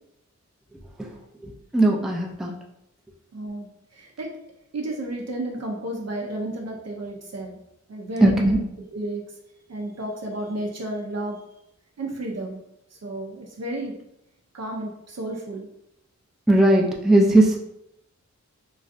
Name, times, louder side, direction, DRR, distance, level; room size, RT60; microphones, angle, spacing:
voice 1, 1.4-2.5 8.2-8.6 16.5-17.6, right 1 dB, ahead, -1 dB, 0.4 m, -18 dB
voice 2, 3.3-4.3 4.7-7.6 7.9-9.2 9.7-11.4 12.0-12.6 12.9-13.9 14.5-15.7, right 1 dB, 60° right, -1 dB, 0.5 m, -32 dB
3.1 x 2.5 x 2.5 m, 0.81 s
wide cardioid pair, 90°, 30 cm